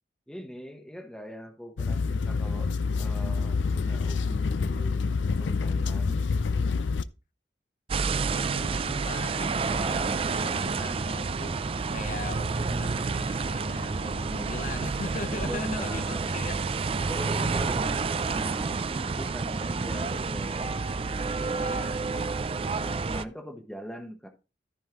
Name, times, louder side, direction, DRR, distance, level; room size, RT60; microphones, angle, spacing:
voice 1, 0.3-2.7 3.0-6.2 15.4-16.5 17.0-20.8 21.3-22.0 22.7-24.3, equal, 5° left, 1.0 m, -41 dB
sound 1, 1.8-7.0, left 4 dB, 85° left, 0.5 m, -27 dB
sound 2, 7.9-23.2, right 4 dB, 30° right, 0.4 m, -29 dB
voice 2, 8.3-11.6 11.9-16.7 21.5-22.8, left 3 dB, 45° left, 0.8 m, -40 dB
14.0 x 5.4 x 3.0 m
head